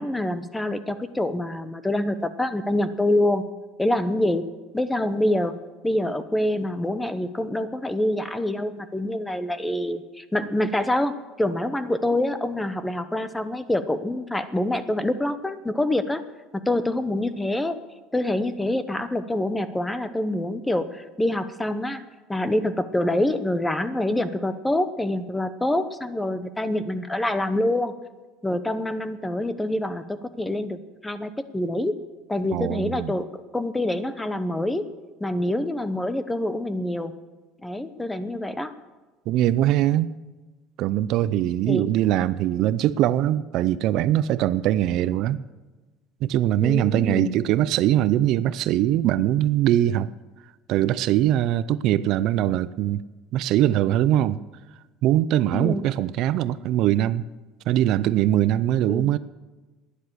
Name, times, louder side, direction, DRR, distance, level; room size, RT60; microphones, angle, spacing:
voice 1, 0.0-3.4 3.8-4.4 4.7-5.6 5.8-16.2 16.5-17.8 18.1-22.0 22.3-27.9 28.4-31.9 32.3-33.3 33.5-34.8 35.2-37.1 37.6-38.7 41.7-41.9 46.6-47.4 55.5-55.9 58.9-59.1, left 1 dB, 5° left, 12 dB, 0.8 m, -26 dB
voice 2, 32.5-33.2 39.3-40.1 40.8-45.4 46.2-50.1 50.7-53.0 53.3-54.4 55.0-57.3 57.7-59.2, right 12 dB, 55° right, 16 dB, 0.5 m, -22 dB
11.5 x 10.0 x 9.8 m, 1.2 s
cardioid pair, 145°, 0 cm